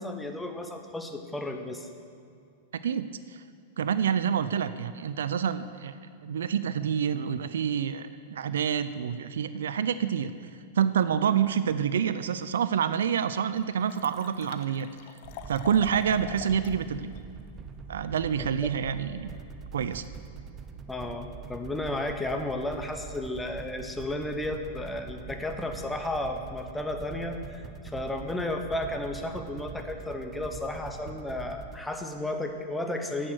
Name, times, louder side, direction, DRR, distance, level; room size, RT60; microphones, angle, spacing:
voice 1, 0.0-1.9 20.9-33.3, left 1 dB, 5° left, 5 dB, 1.0 m, -33 dB
voice 2, 2.8-3.4 3.8-5.9 6.2-10.5 10.7-14.9 15.5-17.1 17.9-19.4 19.7-20.0, right 8 dB, 85° right, 13 dB, 0.4 m, -27 dB
Liquid, 12.7-12.8 13.3-13.4 13.6-16.8 17.2-17.3, left 10 dB, 55° left, 0.7 m, -44 dB
sound 1, 15.2-31.8, right 5 dB, 25° right, 0.5 m, -44 dB
10.5 x 6.4 x 7.8 m, 2.4 s
hypercardioid pair, 120°, 0 cm